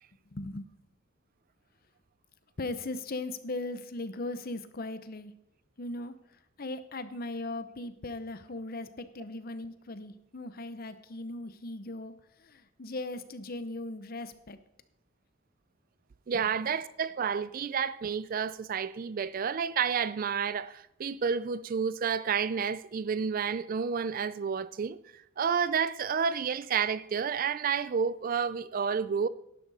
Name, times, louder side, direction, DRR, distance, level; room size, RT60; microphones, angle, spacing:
voice 1, 0.3-0.7 2.6-5.3 5.8-14.6 16.3-16.5, left 2 dB, 45° left, 0.8 m, -38 dB
voice 2, 16.3-29.3, right 6 dB, 40° right, 0.3 m, -30 dB
11.5 x 11.0 x 4.1 m
head